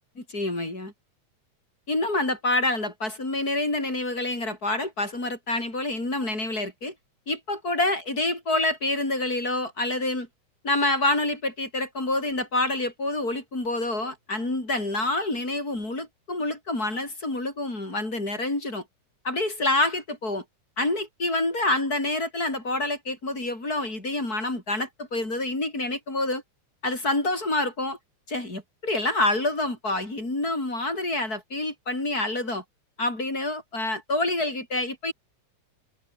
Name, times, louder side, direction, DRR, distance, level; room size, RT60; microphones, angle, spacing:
voice 1, 0.2-0.9 1.9-6.9 7.3-10.3 10.6-18.8 19.2-20.4 20.8-26.4 26.8-28.0 28.3-32.6 33.0-35.1, left 2 dB, 25° left, 7.7 m, -27 dB
omnidirectional pair, 3.5 m